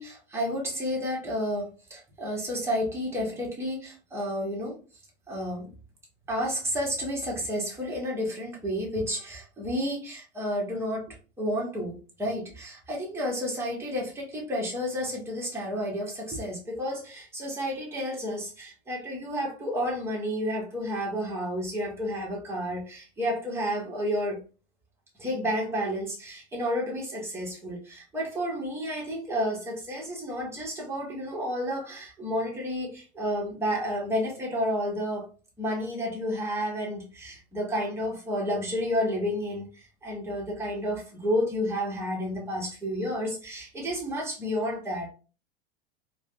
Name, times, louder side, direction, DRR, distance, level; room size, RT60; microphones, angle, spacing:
voice 1, 0.0-4.8 5.3-5.7 6.3-11.1 11.4-11.9 12.2-24.4 25.2-35.3 35.6-45.1, equal, 10° right, 1.2 m, -31 dB
3.2 x 2.3 x 2.7 m
hypercardioid pair, 90°, 32 cm